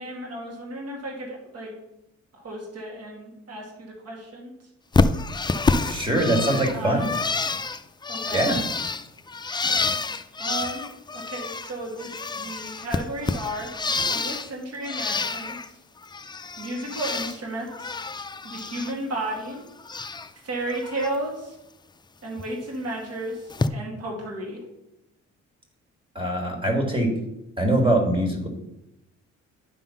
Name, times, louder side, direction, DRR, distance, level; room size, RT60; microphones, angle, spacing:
voice 1, 0.0-1.7 2.3-4.5 6.1-7.1 8.1-8.7 10.4-10.9 11.1-13.7 14.1-15.7 16.6-18.0 18.4-19.6 20.4-21.6 22.2-24.6, right 1 dB, 55° right, -1 dB, 2.2 m, -33 dB
Bird, 4.9-11.7 12.0-14.5 14.8-15.7 16.0-17.4 17.7-18.9 19.2-20.3 20.7-21.1 22.4-22.5 23.5-23.7, left 4 dB, 15° left, 0.4 m, -28 dB
voice 2, 5.9-7.0 8.3-8.6 26.2-27.1 27.6-28.5, right 1 dB, 15° right, 2 dB, 2.1 m, -22 dB
10.5 x 3.7 x 5.7 m, 0.88 s
cardioid pair, 90°, 30 cm